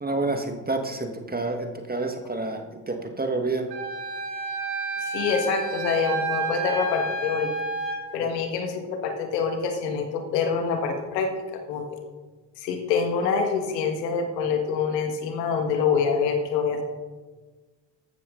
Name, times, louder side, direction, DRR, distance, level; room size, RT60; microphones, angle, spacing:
voice 1, 0.0-3.7 8.2-8.3, right 2 dB, 20° right, 4 dB, 1.5 m, -29 dB
Wind instrument woodwind instrument, 3.7-8.0, right 3 dB, 75° right, 4.4 m, -30 dB
voice 2, 5.0-7.5 8.1-11.9 12.6-16.8, left 5 dB, 90° left, 5 dB, 1.7 m, -26 dB
14.5 x 12.0 x 3.8 m, 1.4 s
hypercardioid pair, 60°, 48 cm